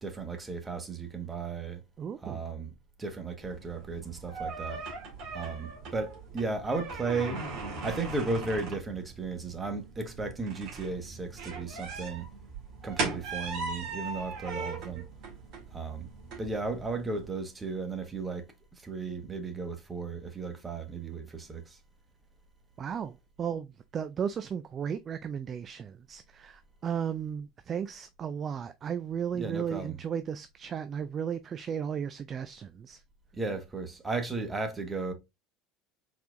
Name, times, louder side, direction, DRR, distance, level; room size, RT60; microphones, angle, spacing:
voice 1, 0.0-1.8 2.2-2.7 3.0-4.8 5.3-7.4 7.8-12.3 12.8-15.1 15.7-16.1 16.4-21.8 29.3-30.0 33.3-35.1, right 3 dB, 20° right, 1.3 m, -35 dB
voice 2, 2.0-2.4 22.8-33.0, right 8 dB, 35° right, 0.3 m, -35 dB
sound 1, 3.4-17.3, right 3 dB, 50° right, 1.9 m, -39 dB
4.3 x 4.1 x 2.5 m
figure-of-eight pair, 65°, 0 cm